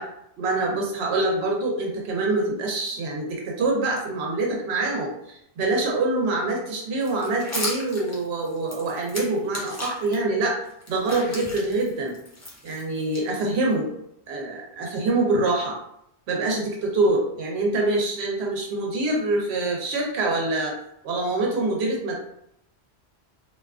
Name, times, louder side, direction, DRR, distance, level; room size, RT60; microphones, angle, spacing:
voice 1, 0.4-10.6 10.9-12.1 12.6-13.9 14.3-15.7 16.3-20.7 21.0-22.1, right 2 dB, 75° right, -1 dB, 0.9 m, -25 dB
sound 1, 7.0-10.2 10.6-13.7, left 1 dB, 30° left, 0.3 m, -36 dB
2.5 x 2.3 x 2.3 m, 0.76 s
omnidirectional pair, 1.1 m